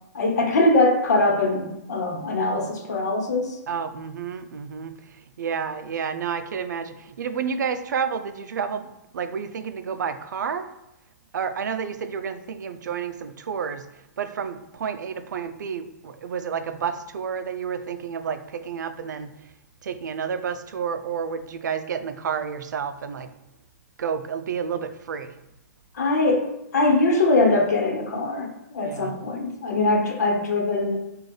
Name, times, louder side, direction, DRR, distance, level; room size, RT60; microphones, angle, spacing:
voice 1, 0.1-3.6 25.9-31.0, left 2 dB, 65° left, 1 dB, 1.2 m, -22 dB
voice 2, 3.7-5.0 5.4-10.7 11.3-13.9 14.2-19.3 19.8-23.3 24.0-25.4 28.8-29.2, right 6 dB, 85° right, 10 dB, 0.5 m, -30 dB
6.2 x 2.5 x 3.2 m, 0.88 s
hypercardioid pair, 170°, 10 cm